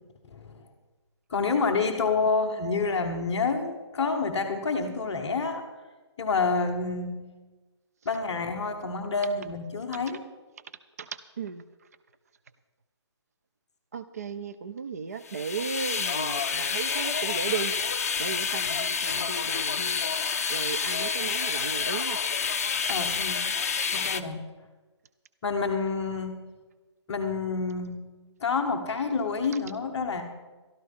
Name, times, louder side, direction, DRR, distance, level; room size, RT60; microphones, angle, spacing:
voice 1, 0.2-0.7 1.3-5.6 6.2-7.3 8.0-10.2 22.9-23.5 23.9-24.4 25.4-26.3 27.1-28.0 28.4-30.2, left 4 dB, 15° left, -6 dB, 0.9 m, -28 dB
voice 2, 11.0-11.7 13.9-17.7 18.2-20.1 20.5-22.2 22.9-23.0 23.8-24.0, right 5 dB, 35° right, 12 dB, 0.4 m, -35 dB
sound 1, 15.3-24.2, left 6 dB, 30° left, 0.5 m, -28 dB
13.0 x 12.0 x 5.4 m, 1.2 s
hypercardioid pair, 175°, 15 cm